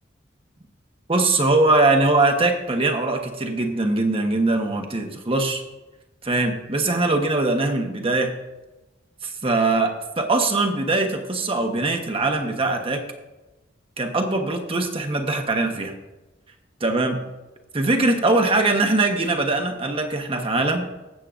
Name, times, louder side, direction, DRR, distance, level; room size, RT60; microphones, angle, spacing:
voice 1, 1.1-5.6 6.2-8.3 9.2-13.0 14.0-15.9 16.8-17.2 17.7-20.9, right 2 dB, 30° right, 4 dB, 1.0 m, -21 dB
19.5 x 7.6 x 2.5 m, 1.1 s
head